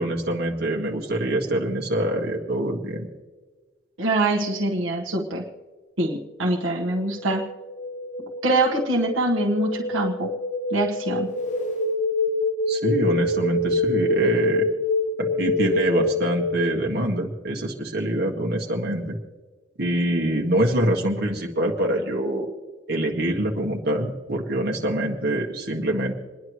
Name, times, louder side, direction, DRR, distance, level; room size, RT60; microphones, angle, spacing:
voice 1, 0.0-3.1 12.7-14.7 15.2-19.2 19.8-22.5 22.9-26.1, right 1 dB, 55° right, -1 dB, 1.9 m, -25 dB
voice 2, 4.0-5.4 6.0-7.5 8.4-10.3 10.7-11.3, right 2 dB, 80° right, 0 dB, 1.4 m, -24 dB
sound 1, 7.0-16.9, left 2 dB, 40° left, 1.0 m, -26 dB
28.5 x 10.5 x 3.2 m, 1.3 s
head